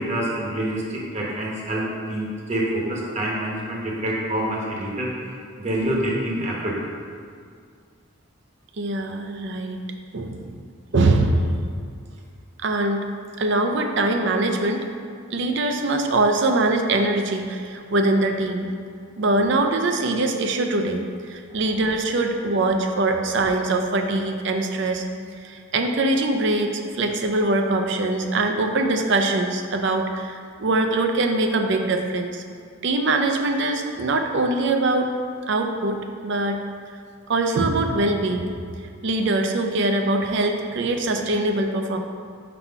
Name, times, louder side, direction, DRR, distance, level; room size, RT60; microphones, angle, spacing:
voice 1, 0.0-5.1 5.6-6.7 21.5-21.6, right 1 dB, 30° right, -3 dB, 1.0 m, -26 dB
voice 2, 8.8-9.8 10.1-10.5 10.9-11.6 12.6-13.0 13.4-14.9 15.3-18.7 19.2-25.0 25.4-32.4 32.8-35.2 35.5-36.6 37.3-38.5 39.0-42.0, right 2 dB, 55° right, 4 dB, 0.5 m, -22 dB
4.4 x 4.2 x 5.5 m, 2.2 s
head